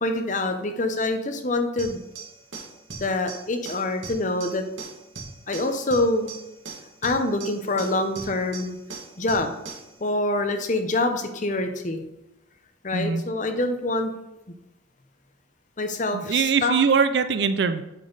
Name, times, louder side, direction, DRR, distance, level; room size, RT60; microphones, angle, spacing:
voice 1, 0.0-2.0 3.0-4.6 5.5-6.3 7.0-8.8 9.2-9.6 10.0-12.0 12.8-14.1 15.8-16.8, left 2 dB, 40° left, 6 dB, 0.8 m, -25 dB
sound 1, 1.8-9.9, right 4 dB, 80° right, 1.8 m, -40 dB
voice 2, 16.1-17.8, right 6 dB, 60° right, 10 dB, 0.4 m, -22 dB
8.4 x 5.4 x 4.0 m, 0.94 s
head